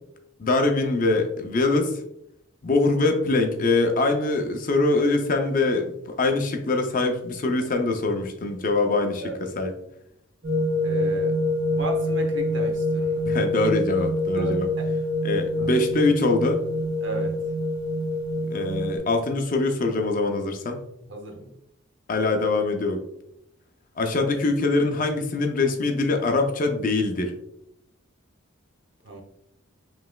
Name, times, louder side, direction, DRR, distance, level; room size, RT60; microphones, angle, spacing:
voice 1, 0.4-2.0 2.6-9.7 13.2-14.7 15.2-16.6 18.5-20.8 22.1-23.0 24.0-27.3, left 3 dB, 40° left, 4 dB, 0.5 m, -23 dB
sound 1, 10.4-19.0, left 1 dB, 85° right, 1.4 m, -26 dB
voice 2, 10.8-11.4 11.7-13.3 14.3-14.9 15.6-15.7 17.0-17.4 21.1-21.5 29.0-29.2, right 3 dB, 60° right, 2 dB, 0.8 m, -34 dB
5.1 x 3.1 x 2.2 m, 0.78 s
head